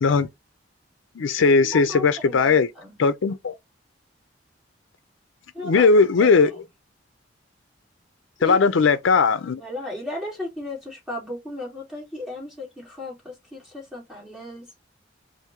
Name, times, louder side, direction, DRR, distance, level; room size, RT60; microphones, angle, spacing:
voice 1, 1.2-2.7 3.0-3.5 5.6-6.6 8.4-9.6, left 4 dB, 85° left, 0.5 m, -18 dB
voice 2, 1.7-3.0 5.5-5.9 6.2-6.3 8.4-8.6 9.5-14.7, left 1 dB, 5° right, 2.4 m, -35 dB
4.8 x 2.6 x 2.9 m
head